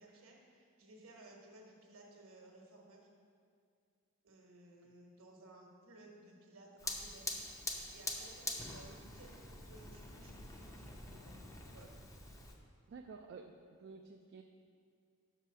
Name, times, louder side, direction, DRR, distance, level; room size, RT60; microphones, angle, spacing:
voice 1, 0.0-3.1 4.2-11.3 11.7-11.9, right 2 dB, 70° right, 0 dB, 1.2 m, -58 dB
Fire, 6.8-12.5, left 2 dB, 15° left, 0.6 m, -45 dB
voice 2, 12.9-13.5 13.8-14.4, right 4 dB, 55° right, 3 dB, 0.3 m, -51 dB
6.1 x 4.7 x 5.6 m, 2.2 s
head